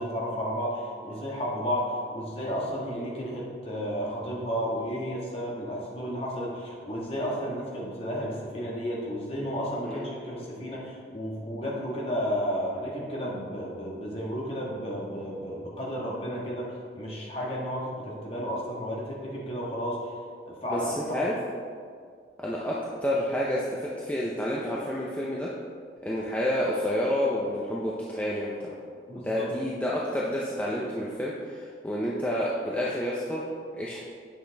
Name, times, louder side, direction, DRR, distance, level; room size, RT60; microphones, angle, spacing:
voice 1, 0.0-20.1 20.5-21.4 29.1-29.5, equal, 30° left, -4 dB, 1.5 m, -32 dB
voice 2, 20.7-21.3 22.4-25.5 26.0-28.7 29.1-33.5 33.7-34.0, equal, 10° left, -6 dB, 0.6 m, -29 dB
8.7 x 5.9 x 3.4 m, 2.1 s
head